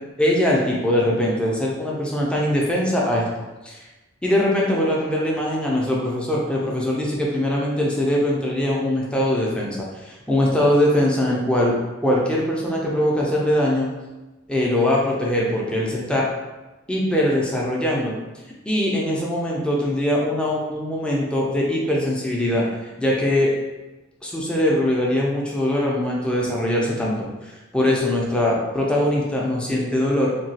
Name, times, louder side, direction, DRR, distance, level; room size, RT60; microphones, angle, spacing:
voice 1, 0.2-3.3 3.6-3.8 4.2-11.7 12.0-13.9 14.5-16.3 16.9-18.1 18.7-22.7 23.0-23.5 24.2-30.4, left 1 dB, 5° left, -4 dB, 0.4 m, -22 dB
2.9 x 2.2 x 2.7 m, 1.1 s
head